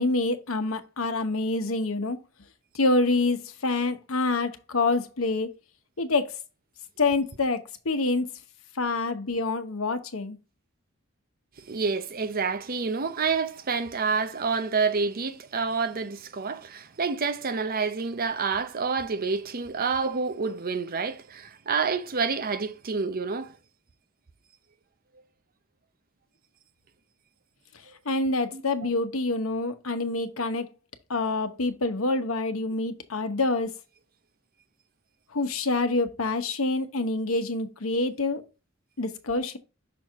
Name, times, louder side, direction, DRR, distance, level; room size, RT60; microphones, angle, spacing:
voice 1, 0.0-2.2 2.7-5.5 6.0-6.4 7.0-8.3 8.7-10.4 28.0-30.7 31.1-33.7 35.3-38.4 39.0-39.6, left 3 dB, 90° left, 1.0 m, -26 dB
voice 2, 11.6-23.5 28.5-28.9, right 5 dB, 45° right, 0.7 m, -28 dB
6.2 x 4.4 x 3.6 m
head